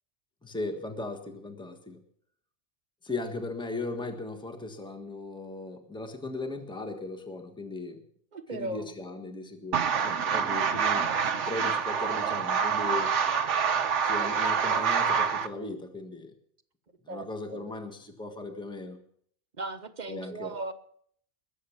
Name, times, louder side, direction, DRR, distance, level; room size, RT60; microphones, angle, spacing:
voice 1, 0.4-2.0 3.0-8.0 8.5-13.1 14.0-16.3 17.0-19.0 20.1-20.5, left 2 dB, 5° left, 5 dB, 1.4 m, -37 dB
voice 2, 8.3-9.0 17.1-17.7 19.6-20.7, right 2 dB, 40° right, 9 dB, 1.2 m, -37 dB
sound 1, 9.7-15.5, right 6 dB, 70° right, 1.3 m, -26 dB
21.5 x 7.4 x 7.2 m, 0.65 s
omnidirectional pair, 1.3 m